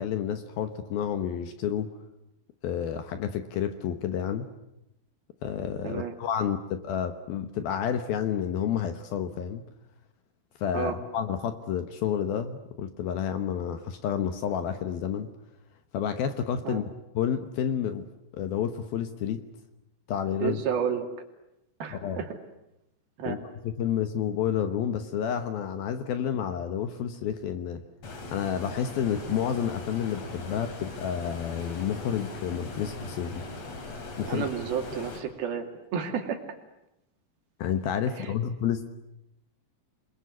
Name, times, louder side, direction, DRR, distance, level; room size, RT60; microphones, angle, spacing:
voice 1, 0.0-1.9 2.6-4.5 5.4-9.6 10.6-15.3 15.9-16.9 17.1-18.1 18.3-19.4 20.1-20.6 21.9-22.2 23.3-23.4 23.6-27.8 28.3-33.4 34.2-34.5 37.6-38.9, left 8 dB, 70° left, 9 dB, 2.6 m, -30 dB
voice 2, 20.4-21.1 21.8-22.4 23.2-23.4 34.3-36.4 38.1-38.3, right 7 dB, 60° right, 4 dB, 4.0 m, -31 dB
Stream, 28.0-35.2, left 2 dB, 40° left, 3.8 m, -40 dB
28.5 x 21.5 x 9.7 m, 0.88 s
omnidirectional pair, 5.2 m